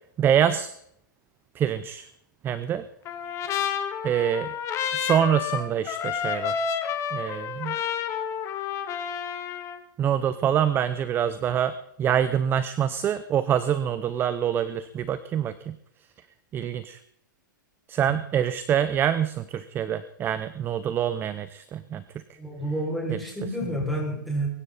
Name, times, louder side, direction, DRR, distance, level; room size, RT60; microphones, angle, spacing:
voice 1, 0.2-0.7 1.5-2.1 2.4-2.8 4.0-4.5 4.9-6.7 7.1-7.8 10.0-15.8 16.5-17.0 17.9-22.2 23.1-23.2, right 9 dB, 20° right, 14 dB, 0.7 m, -25 dB
Trumpet, 3.1-9.8, left 8 dB, 25° left, 1.8 m, -30 dB
voice 2, 22.4-24.5, right 1 dB, ahead, -2 dB, 6.0 m, -29 dB
23.0 x 12.0 x 4.2 m, 0.72 s
hypercardioid pair, 140°, 11 cm